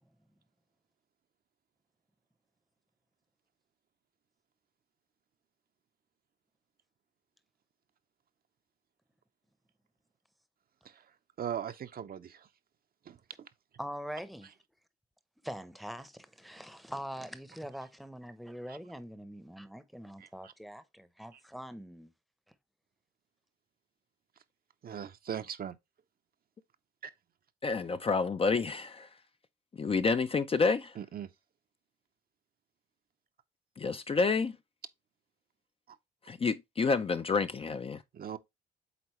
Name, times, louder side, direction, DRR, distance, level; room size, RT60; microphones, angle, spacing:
voice 1, 11.4-12.5 13.1-13.5 18.7-18.8 20.2-20.5 21.3-21.4 24.8-25.8 27.0-27.1 31.0-31.3 35.9-36.0 38.1-38.4, right 9 dB, 50° right, 0.7 m, -40 dB
voice 2, 13.8-14.5 15.4-22.1, equal, ahead, 0.8 m, -43 dB
voice 3, 27.6-29.1 29.8-30.9 33.8-34.6 36.3-38.0, left 4 dB, 30° left, 0.5 m, -29 dB
8.2 x 3.9 x 3.1 m
cardioid pair, 90°, 20 cm